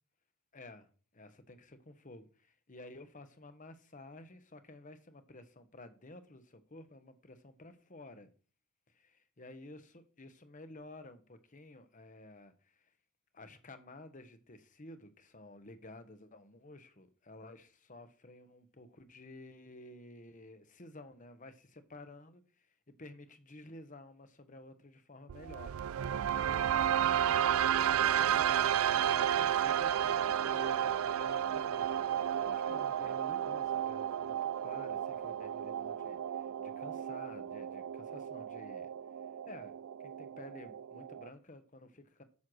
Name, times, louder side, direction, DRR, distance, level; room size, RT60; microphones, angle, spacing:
voice 1, 0.5-8.3 8.9-12.9 13.3-25.8 26.4-32.0 32.4-38.9 39.5-39.7 40.0-42.2, left 2 dB, 35° left, 1.1 m, -53 dB
sound 1, 25.3-41.3, right 10 dB, 80° right, 0.4 m, -32 dB
9.7 x 4.5 x 6.3 m
head